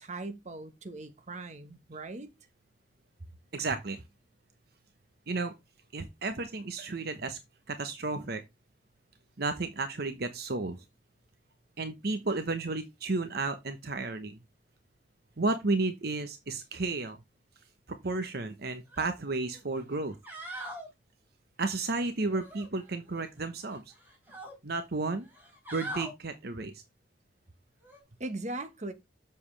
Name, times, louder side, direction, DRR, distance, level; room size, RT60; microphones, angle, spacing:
voice 1, 0.0-2.3 28.2-28.9, right 2 dB, 40° right, 1.2 m, -39 dB
voice 2, 3.5-4.0 5.3-5.5 5.9-7.4 7.7-8.4 9.4-10.8 11.8-14.4 15.4-17.2 17.9-20.2 21.6-23.8 24.6-25.3 25.7-26.8, right 3 dB, 60° right, 0.9 m, -32 dB
sound 1, 18.9-19.1 19.5-19.6 20.1-20.9 22.3-23.3 23.6-24.5 25.3-26.1 27.8-28.0, right 1 dB, 10° right, 4.1 m, -42 dB
7.4 x 6.9 x 3.3 m
head